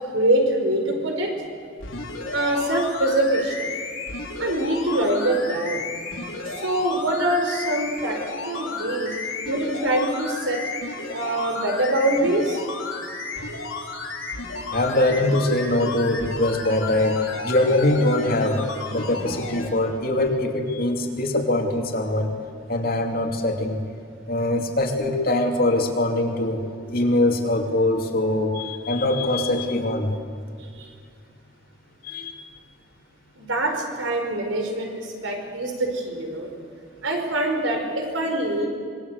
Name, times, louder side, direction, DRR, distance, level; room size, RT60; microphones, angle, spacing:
voice 1, 0.0-1.3 2.3-3.7 4.4-5.8 6.5-8.2 8.5-9.1 9.5-10.6 11.1-12.6 33.4-36.5 37.0-38.7, right 1 dB, 75° right, 3 dB, 5.2 m, -24 dB
sound 1, 1.8-19.7 20.3-20.4, left 3 dB, 85° left, 5.3 m, -33 dB
voice 2, 14.7-18.6 18.9-22.3 22.7-23.8 24.3-26.6 26.9-30.1 32.0-32.4, left 1 dB, 50° left, 2 dB, 2.9 m, -22 dB
26.0 x 22.0 x 8.2 m, 2.2 s
head